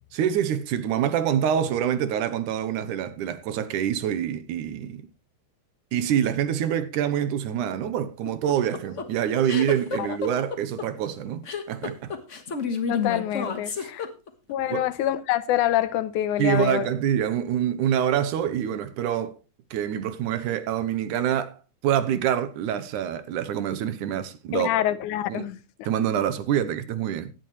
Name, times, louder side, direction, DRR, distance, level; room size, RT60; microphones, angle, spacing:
voice 1, 0.1-5.1 5.9-12.1 13.7-13.9 14.7-14.9 16.4-19.4 19.7-21.6 21.8-24.7 25.3-25.5 25.8-27.3, right 9 dB, 90° right, 2.4 m, -26 dB
sound 1, 8.3-14.5, left 5 dB, 40° left, 1.0 m, -30 dB
voice 2, 12.9-14.1 14.5-16.9 24.5-25.9, left 12 dB, 85° left, 2.3 m, -26 dB
16.5 x 10.5 x 3.2 m
omnidirectional pair, 3.5 m